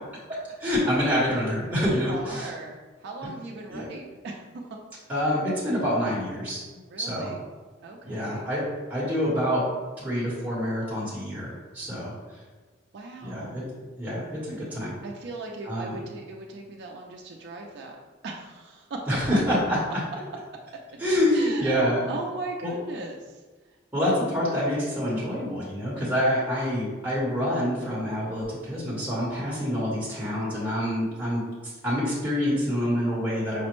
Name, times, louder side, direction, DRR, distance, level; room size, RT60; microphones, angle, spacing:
voice 1, 0.6-2.5 3.7-3.9 5.1-6.6 7.0-7.3 8.0-8.6 8.9-9.6 10.0-12.1 13.2-13.6 14.0-14.9 15.7-16.0 19.1-19.8 21.0-22.0 22.6-22.7 23.9-31.4 31.8-33.7, equal, 10° right, -8 dB, 0.9 m, -26 dB
voice 2, 1.8-4.4 6.9-7.4 7.8-8.5 12.9-13.6 15.0-18.0 18.2-19.0 19.5-19.6 20.9-21.0 21.3-23.4, right 3 dB, 60° right, 0 dB, 0.3 m, -38 dB
5.0 x 2.1 x 3.0 m, 1.3 s
head